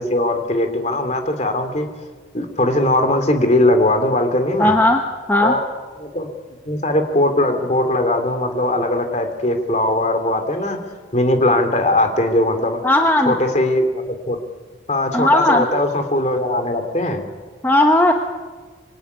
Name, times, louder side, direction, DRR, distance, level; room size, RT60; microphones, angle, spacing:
voice 1, 0.0-1.9 2.3-4.8 5.4-5.6 6.0-6.3 6.6-10.8 11.1-12.8 13.2-14.4 14.9-17.2, left 1 dB, 35° left, 7 dB, 3.0 m, -19 dB
voice 2, 4.6-5.0 5.3-5.5 12.8-13.3 15.1-15.7 17.6-18.1, left 1 dB, 10° left, 3 dB, 1.2 m, -15 dB
25.5 x 22.0 x 9.8 m, 1.4 s
head